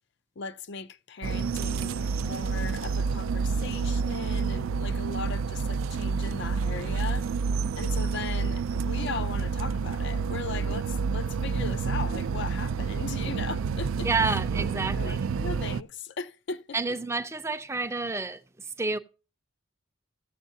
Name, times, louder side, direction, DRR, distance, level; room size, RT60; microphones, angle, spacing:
voice 1, 0.4-7.3 7.7-14.4 14.8-17.0, left 4 dB, 60° left, 0.5 m, -38 dB
sound 1, 1.2-15.8, right 5 dB, 75° right, 0.4 m, -29 dB
voice 2, 14.0-15.2 16.7-19.0, right 3 dB, 15° right, 0.5 m, -29 dB
16.0 x 7.2 x 2.7 m
head